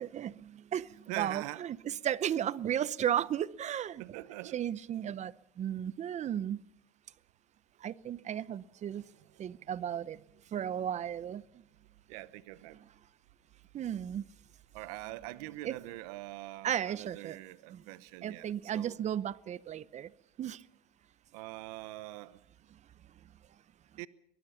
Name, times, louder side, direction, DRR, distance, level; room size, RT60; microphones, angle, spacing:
voice 1, 0.0-4.0 4.5-6.6 7.8-9.0 9.4-10.2 10.5-11.4 12.7-12.8 13.7-14.2 15.6-15.7 16.6-17.4 17.7-17.8 18.2-20.1 20.4-20.6, right 10 dB, 35° right, 0.8 m, -34 dB
voice 2, 1.1-1.6 4.0-4.6 9.1-9.7 12.1-12.8 14.7-19.0 21.3-22.4 24.0-24.1, right 18 dB, 80° right, 0.9 m, -43 dB
23.5 x 19.5 x 5.8 m
supercardioid pair, 105°, 20 cm